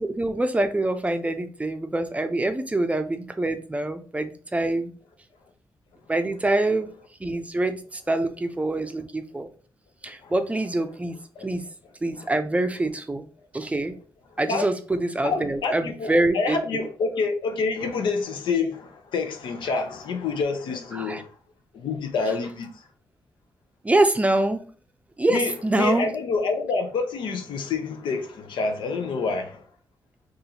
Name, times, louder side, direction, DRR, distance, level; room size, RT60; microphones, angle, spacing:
voice 1, 0.0-4.9 6.1-6.9 7.2-9.5 10.0-11.6 12.0-13.2 13.5-13.9 14.4-16.9 20.9-21.2 23.8-24.6 25.2-26.1, right 2 dB, 15° right, 0.5 m, -25 dB
voice 2, 15.2-21.3 21.7-22.7 25.3-29.6, left 4 dB, 85° left, 0.6 m, -27 dB
3.9 x 2.5 x 2.8 m
cardioid pair, 80°, 8 cm